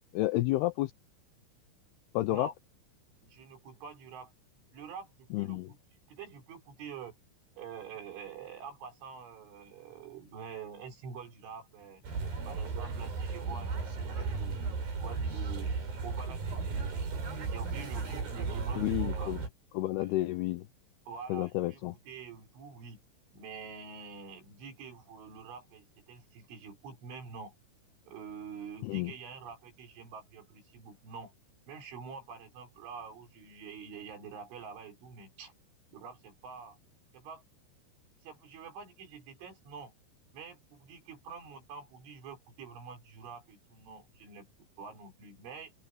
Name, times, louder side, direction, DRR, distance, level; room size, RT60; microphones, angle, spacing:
voice 1, 0.1-0.9 2.1-2.5 5.3-5.7 18.8-19.4 19.7-20.7 21.3-22.0 28.8-29.1, left 17 dB, 80° left, 2.3 m, -30 dB
voice 2, 3.2-4.3 4.7-5.8 6.1-7.2 7.6-12.0 12.4-15.7 16.0-19.3 20.0-20.1 21.1-23.0 23.3-27.5 28.1-31.3 31.7-35.5 35.9-36.8 37.1-37.4 38.2-39.9 40.3-44.5 44.8-45.7, right 6 dB, 80° right, 6.8 m, -46 dB
sound 1, 12.0-19.5, right 4 dB, 50° right, 6.7 m, -35 dB
open air
omnidirectional pair, 5.4 m